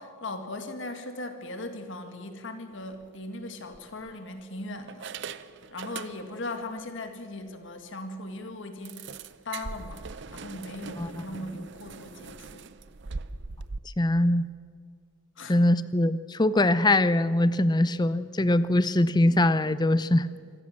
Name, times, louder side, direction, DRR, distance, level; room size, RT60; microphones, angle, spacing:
voice 1, 0.0-5.1 5.7-9.1 9.5-10.0 10.3-12.7 15.4-15.6, left 2 dB, 65° left, 7 dB, 2.0 m, -38 dB
sound 1, 2.8-3.0 3.7-4.4 4.9-6.5 6.8-7.0 7.4-7.5 7.8-7.9 8.8-13.8, right 4 dB, 60° right, 0.7 m, -41 dB
voice 2, 14.0-14.5 15.5-20.3, left 1 dB, 20° left, 15 dB, 0.6 m, -22 dB
26.0 x 14.5 x 7.5 m, 2.1 s
head